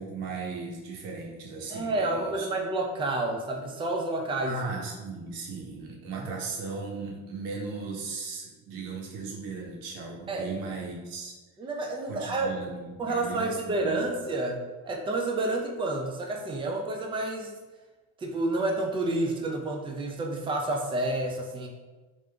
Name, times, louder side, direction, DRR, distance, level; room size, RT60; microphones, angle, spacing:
voice 1, 0.0-2.5 4.5-11.3 12.1-14.2, right 4 dB, 80° right, -1 dB, 1.0 m, -37 dB
voice 2, 1.7-4.6 6.1-6.3 10.3-10.5 11.6-12.5 13.0-17.5 18.2-21.7, right 2 dB, 10° right, 1 dB, 0.4 m, -29 dB
3.3 x 2.7 x 3.3 m, 1.2 s
supercardioid pair, 95°, 43 cm